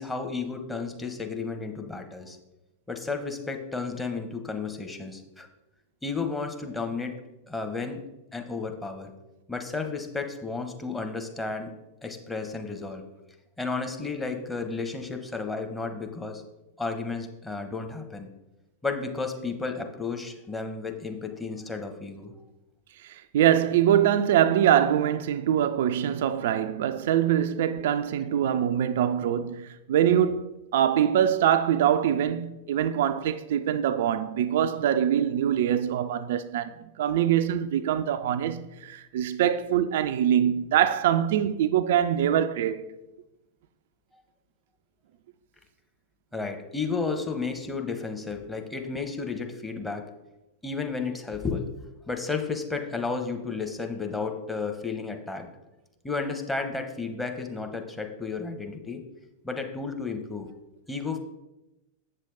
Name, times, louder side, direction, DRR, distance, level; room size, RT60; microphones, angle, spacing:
voice 1, 0.0-2.4 2.9-5.5 6.0-7.2 7.5-8.0 8.3-9.1 9.5-11.8 12.0-13.0 13.6-16.4 16.8-18.3 18.8-22.3 46.3-50.1 50.6-51.7 52.1-55.5 56.0-59.0 59.4-60.5 60.9-61.2, left 4 dB, 10° left, 1.0 m, -32 dB
voice 2, 23.0-42.8, right 10 dB, 55° right, 0.3 m, -24 dB
8.0 x 6.5 x 3.8 m
figure-of-eight pair, 90°, 0 cm